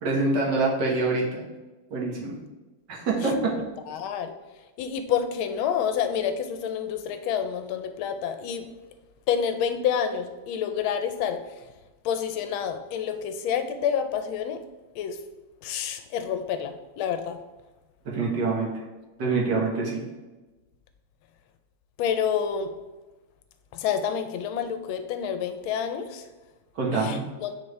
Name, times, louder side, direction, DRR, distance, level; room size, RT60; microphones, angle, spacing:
voice 1, 0.0-1.4 1.9-2.4 2.9-3.3 18.1-18.7 19.2-20.0 26.8-27.2, right 3 dB, 60° right, -3 dB, 1.8 m, -25 dB
voice 2, 3.2-4.3 4.8-8.7 9.3-11.6 12.0-14.6 14.9-15.2 15.6-17.4 22.0-22.7 23.7-26.3 26.9-27.5, left 8 dB, 85° left, 8 dB, 1.4 m, -28 dB
7.1 x 5.0 x 3.2 m, 1.1 s
omnidirectional pair, 2.2 m